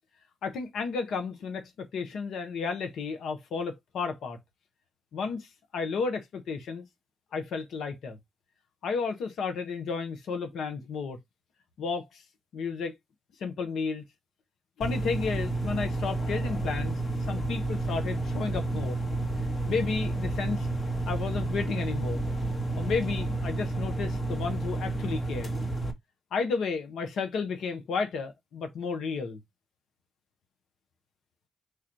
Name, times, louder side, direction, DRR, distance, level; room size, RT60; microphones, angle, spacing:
voice 1, 0.4-4.4 5.1-5.5 5.7-6.9 7.3-8.2 8.8-11.2 11.8-12.2 12.5-13.0 13.4-14.0 14.8-19.0 19.6-20.7 21.1-22.2 22.8-25.5 26.3-29.4, left 5 dB, 80° left, 0.8 m, -32 dB
sound 1, 14.8-25.9, right 2 dB, 55° left, 1.3 m, -30 dB
4.9 x 2.5 x 4.3 m
supercardioid pair, 40°, 0 cm